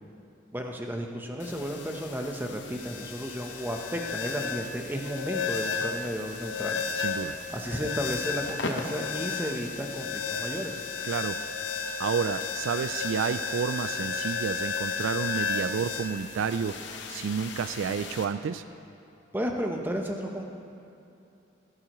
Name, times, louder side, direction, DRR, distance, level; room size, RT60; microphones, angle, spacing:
voice 1, 0.5-6.8 7.5-10.8 19.3-20.4, equal, 10° right, 2 dB, 0.8 m, -33 dB
sound 1, 1.4-18.2, left 5 dB, 65° left, 0.9 m, -34 dB
voice 2, 7.0-7.4 11.0-11.6 12.0-16.8 17.1-18.6, right 6 dB, 80° right, 12 dB, 0.3 m, -30 dB
17.5 x 11.5 x 3.1 m, 2.7 s
head